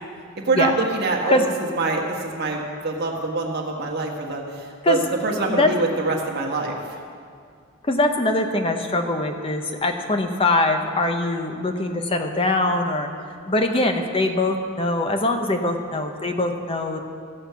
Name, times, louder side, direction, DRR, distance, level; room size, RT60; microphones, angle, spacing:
voice 1, 0.4-1.5 1.7-6.8, right 3 dB, 50° right, 0 dB, 1.5 m, -25 dB
voice 2, 7.8-13.1 13.5-17.0, left 2 dB, 25° left, 5 dB, 0.8 m, -22 dB
15.5 x 6.6 x 5.7 m, 2.2 s
head